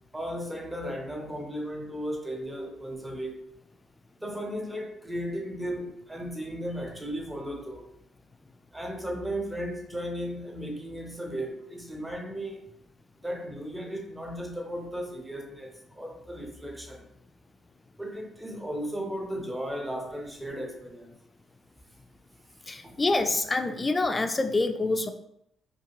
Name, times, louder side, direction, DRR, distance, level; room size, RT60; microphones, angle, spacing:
voice 1, 0.1-3.4 4.2-7.8 8.7-12.6 13.2-17.1 18.0-21.1 22.8-23.0, equal, 10° right, 1 dB, 0.6 m, -35 dB
voice 2, 22.6-25.1, left 2 dB, 25° left, 7 dB, 0.3 m, -26 dB
2.6 x 2.5 x 2.9 m, 0.78 s
cardioid pair, 90°, 0 cm